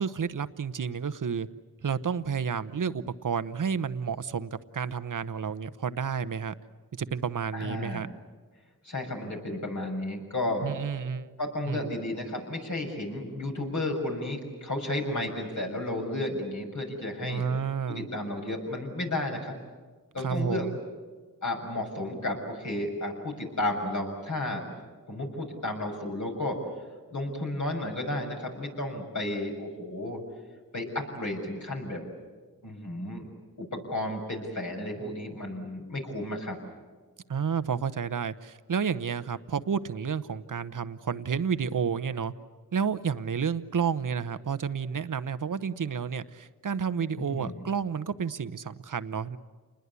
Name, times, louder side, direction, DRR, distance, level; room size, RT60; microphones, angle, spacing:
voice 1, 0.0-1.5 1.8-6.5 6.9-8.1 10.6-11.3 11.7-11.9 17.2-18.1 20.2-20.8 37.3-42.3 42.7-49.4, right 6 dB, 65° right, 13 dB, 1.0 m, -31 dB
voice 2, 7.5-8.0 8.8-10.7 11.4-17.4 17.9-19.6 20.1-20.7 21.4-24.7 25.1-26.6 27.1-30.2 30.7-32.1 32.6-33.3 33.6-36.6 47.2-47.6, left 1 dB, 60° left, 1 dB, 6.7 m, -33 dB
28.5 x 21.0 x 8.3 m, 1.4 s
cardioid pair, 55°, 34 cm